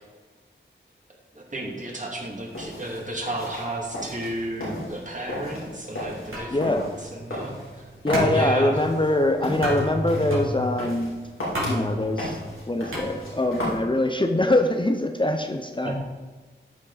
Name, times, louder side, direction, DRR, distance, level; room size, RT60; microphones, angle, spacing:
voice 1, 1.3-6.8 7.1-7.9 8.3-8.8 15.8-15.9, right 1 dB, 40° right, -1 dB, 2.4 m, -33 dB
sound 1, 2.3-13.8, left 1 dB, 90° left, 3.0 m, -36 dB
sound 2, 6.3-13.7, equal, 85° right, 2.7 m, -32 dB
voice 2, 6.5-6.8 8.0-11.1 11.7-12.4 12.7-15.9, left 1 dB, 25° left, 4 dB, 0.7 m, -23 dB
13.0 x 5.2 x 4.1 m, 1.4 s
wide cardioid pair, 45°, 20 cm